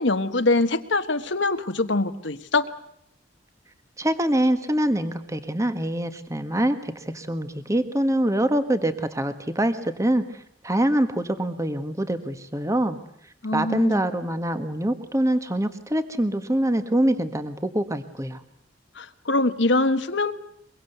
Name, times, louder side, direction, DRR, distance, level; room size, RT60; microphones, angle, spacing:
voice 1, 0.0-2.7 13.4-14.0 18.9-20.3, left 2 dB, 80° left, 8 dB, 1.5 m, -23 dB
voice 2, 4.0-10.2 10.6-13.0 13.5-18.4, right 1 dB, 15° right, 10 dB, 1.5 m, -24 dB
24.0 x 23.0 x 8.0 m, 0.70 s
head